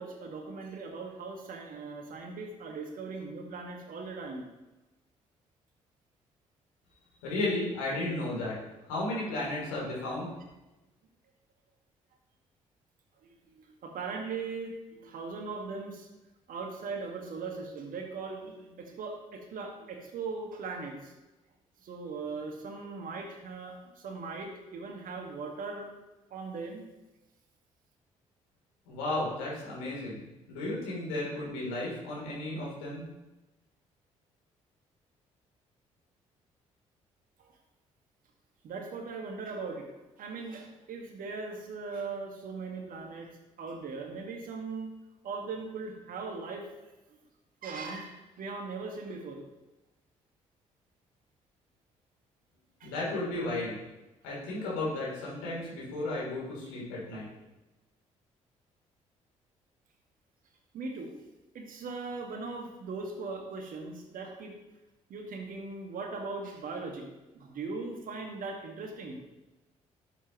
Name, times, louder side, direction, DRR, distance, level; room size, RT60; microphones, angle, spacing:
voice 1, 0.0-4.5 13.6-16.1 16.5-21.1 21.8-25.9 26.3-26.8 37.4-37.5 38.6-39.8 40.2-43.3 43.6-44.9 45.2-46.9 47.6-49.4 52.8-52.9 60.7-61.1 61.5-64.5 65.1-67.1 67.4-69.2, right 4 dB, 55° right, 2 dB, 1.8 m, -39 dB
voice 2, 7.2-8.6 8.9-10.3 28.8-30.2 30.5-33.1 52.8-53.8 54.2-57.3, left 2 dB, 75° left, -5 dB, 3.3 m, -34 dB
12.0 x 7.5 x 3.0 m, 1.0 s
hypercardioid pair, 45°, 17 cm